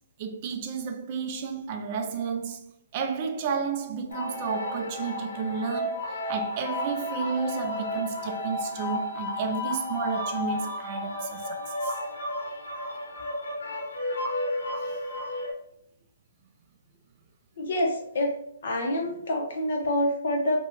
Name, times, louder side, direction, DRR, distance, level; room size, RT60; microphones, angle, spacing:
voice 1, 0.2-12.0, right 5 dB, 35° right, 0.4 m, -32 dB
sound 1, 4.1-15.5, left 1 dB, 90° left, 0.8 m, -32 dB
voice 2, 17.6-18.3 18.6-20.6, left 1 dB, 60° left, 0.8 m, -26 dB
2.8 x 2.2 x 2.9 m
hypercardioid pair, 160°, 0 cm